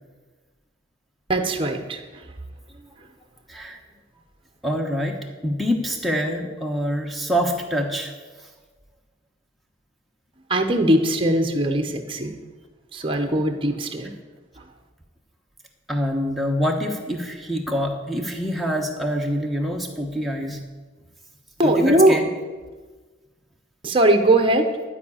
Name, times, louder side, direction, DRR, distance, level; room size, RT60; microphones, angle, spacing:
voice 1, 1.3-2.0 10.5-12.4 12.9-14.1 21.6-22.2 23.8-24.7, right 1 dB, 25° right, 5 dB, 0.9 m, -20 dB
voice 2, 4.6-8.1 15.9-20.6 21.6-22.3, equal, ahead, 2 dB, 1.1 m, -25 dB
12.5 x 4.9 x 8.6 m, 1.4 s
head